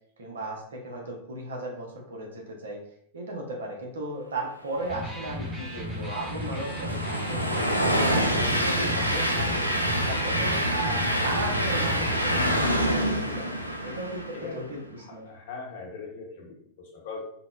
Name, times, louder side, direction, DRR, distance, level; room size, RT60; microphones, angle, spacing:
voice 1, 0.2-2.8 3.1-7.7 8.0-9.7 10.1-13.5 13.8-15.3, right 2 dB, 65° right, 0 dB, 0.7 m, -36 dB
Electric guitar, 4.8-12.8, equal, 5° right, 0.7 m, -35 dB
Train, 5.2-14.6, equal, 85° right, 0.3 m, -27 dB
voice 2, 14.3-17.2, left 4 dB, 55° left, -1 dB, 0.8 m, -40 dB
3.7 x 2.0 x 2.3 m, 0.67 s
figure-of-eight pair, 90°, 0 cm